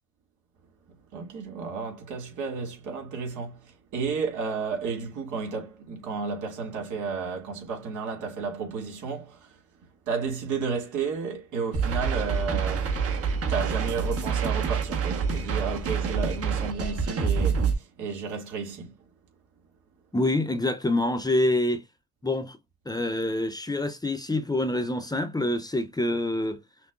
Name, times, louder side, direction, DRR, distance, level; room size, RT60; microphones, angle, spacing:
voice 1, 1.1-9.6 10.1-13.0 13.3-18.9, right 5 dB, 80° right, 2.2 m, -32 dB
sound 1, 11.7-17.7, right 5 dB, 50° right, 1.4 m, -27 dB
voice 2, 20.1-21.8 22.2-22.6 22.9-26.6, left 1 dB, 15° left, 0.7 m, -26 dB
5.9 x 2.3 x 2.5 m
cardioid pair, 90°, 30 cm